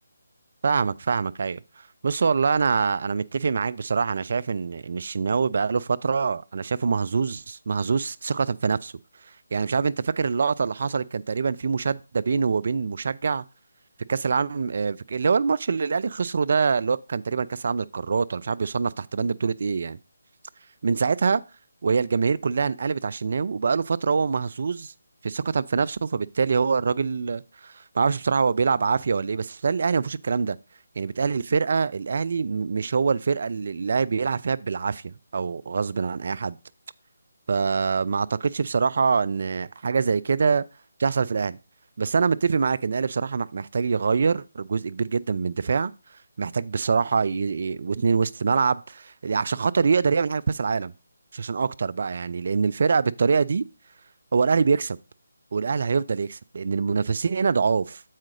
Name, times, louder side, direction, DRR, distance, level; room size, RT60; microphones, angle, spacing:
voice 1, 0.6-1.6 2.0-8.9 9.5-13.4 14.1-20.0 20.8-21.4 21.8-24.9 25.2-30.6 31.0-36.6 37.5-40.6 41.0-41.6 42.0-45.9 46.4-50.9 51.3-53.6 54.3-55.0 55.5-58.0, right 5 dB, 50° right, 0.4 m, -24 dB
7.5 x 5.0 x 4.8 m
figure-of-eight pair, 155°, 0 cm